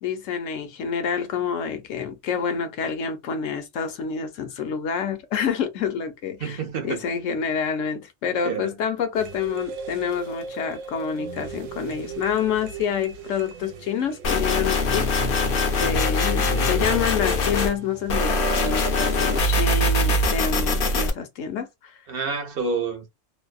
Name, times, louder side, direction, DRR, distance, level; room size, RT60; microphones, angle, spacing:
voice 1, 0.0-15.1 15.8-21.9, left 7 dB, 70° left, 1.0 m, -28 dB
voice 2, 6.4-7.0 8.4-8.7 16.4-16.9 22.1-23.1, right 5 dB, 55° right, 0.8 m, -29 dB
sound 1, 9.1-19.4, right 6 dB, 75° right, 0.9 m, -37 dB
sound 2, 14.2-17.7 18.1-21.1, left 2 dB, 55° left, 0.6 m, -22 dB
2.7 x 2.0 x 2.3 m
omnidirectional pair, 1.4 m